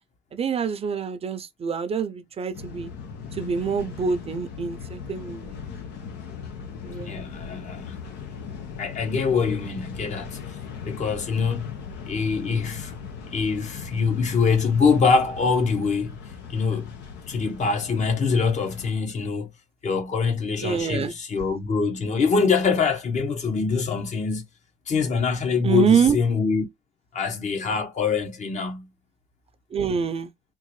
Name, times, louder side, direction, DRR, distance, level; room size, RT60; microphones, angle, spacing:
voice 1, 0.3-2.9 3.3-5.6 6.8-7.2 20.6-21.1 25.6-26.2 29.7-30.3, right 7 dB, 35° right, 0.6 m, -25 dB
sound 1, 2.5-18.9, left 6 dB, 85° left, 1.0 m, -39 dB
voice 2, 6.9-7.9 8.8-10.4 10.8-11.8 12.1-12.9 13.3-16.2 16.5-16.9 17.3-19.5 19.8-24.4 24.9-26.6 27.1-28.9, left 5 dB, 45° left, 1.0 m, -24 dB
3.7 x 2.5 x 3.1 m
cardioid pair, 110°, 17 cm